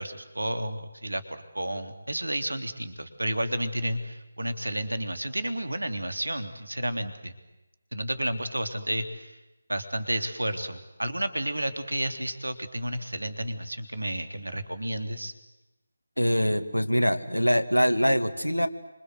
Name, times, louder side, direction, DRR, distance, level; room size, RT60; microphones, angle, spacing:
voice 1, 0.0-7.3 7.9-9.4 9.7-15.3, right 1 dB, 75° right, 9 dB, 3.4 m, -31 dB
voice 2, 16.2-18.7, equal, 90° left, 8 dB, 2.4 m, -23 dB
28.5 x 26.0 x 8.0 m, 0.99 s
figure-of-eight pair, 155°, 0 cm